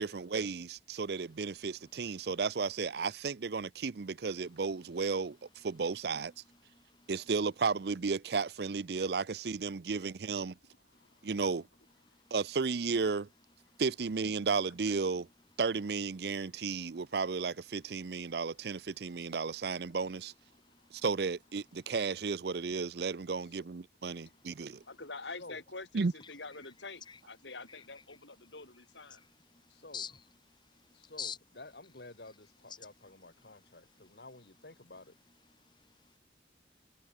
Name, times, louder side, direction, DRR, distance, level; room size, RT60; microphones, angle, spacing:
voice 1, 0.0-6.3 7.1-10.5 11.2-11.7 12.3-13.3 13.8-15.3 15.6-20.3 20.9-24.8 25.9-26.1, right 4 dB, 65° right, 0.5 m, -33 dB
voice 2, 6.7-7.1 10.9-11.2 12.1-12.3 13.7-13.8 20.5-21.0 24.4-24.9 27.1-27.2 29.1-29.2 29.5-30.2 30.6-31.4 35.6-36.2, left 7 dB, 25° left, 1.8 m, -47 dB
voice 3, 10.7-11.3 20.7-20.8 24.7-29.3, left 3 dB, 90° left, 8.0 m, -47 dB
voice 4, 29.7-30.1 30.9-35.1, left 2 dB, 65° left, 2.2 m, -52 dB
head